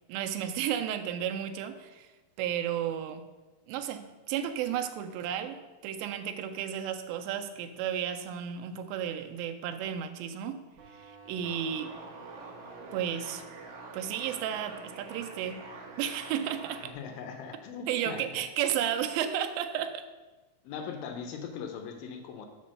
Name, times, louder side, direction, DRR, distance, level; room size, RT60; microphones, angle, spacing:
voice 1, 0.1-2.1 2.4-3.3 3.7-12.0 12.9-13.4 13.9-15.7 16.0-16.9 17.9-20.1, right 9 dB, 80° right, 7 dB, 2.3 m, -33 dB
sound 1, 10.7-16.9, right 3 dB, 65° right, 1.6 m, -46 dB
voice 2, 16.9-18.4 20.6-22.5, left 6 dB, 80° left, 5 dB, 2.5 m, -40 dB
6.0 x 4.4 x 6.4 m, 1.2 s
omnidirectional pair, 4.3 m